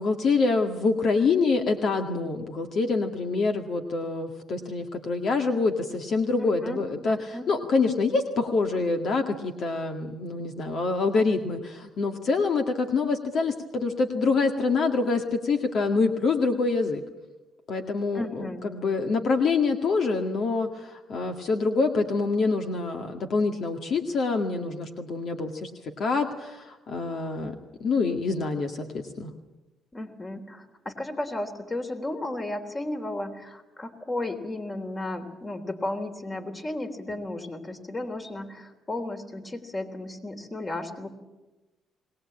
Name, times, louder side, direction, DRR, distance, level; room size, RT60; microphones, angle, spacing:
voice 1, 0.0-17.0 17.7-27.6 27.8-29.3, left 4 dB, 60° left, 4 dB, 2.0 m, -26 dB
voice 2, 6.4-7.5 18.1-18.6 29.9-41.1, left 2 dB, 25° left, 6 dB, 3.5 m, -34 dB
21.5 x 19.0 x 8.7 m, 1.1 s
cardioid pair, 80°, 0 cm